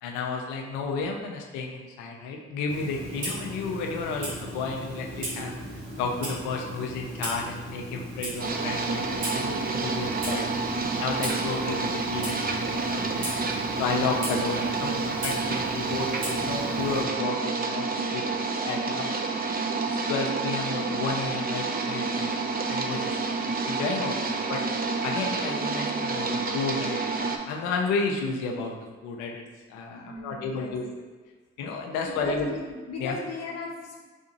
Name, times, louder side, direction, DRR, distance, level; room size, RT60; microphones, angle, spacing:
voice 1, 0.0-5.5 6.0-10.7 11.0-13.5 13.8-18.4 18.6-19.2 19.9-22.3 22.7-23.2 23.4-24.6 25.0-28.7 29.0-29.4 29.7-30.8 31.6-32.5 33.0-33.1, left 4 dB, 85° left, 1 dB, 0.5 m, -32 dB
Clock, 2.7-17.0, right 1 dB, 85° right, 1.0 m, -37 dB
sound 1, 8.4-27.4, right 4 dB, 30° right, 0.5 m, -29 dB
voice 2, 29.9-30.7 32.1-34.0, left 3 dB, 60° left, 0 dB, 0.9 m, -36 dB
3.4 x 2.7 x 3.9 m, 1.3 s
hypercardioid pair, 40°, 29 cm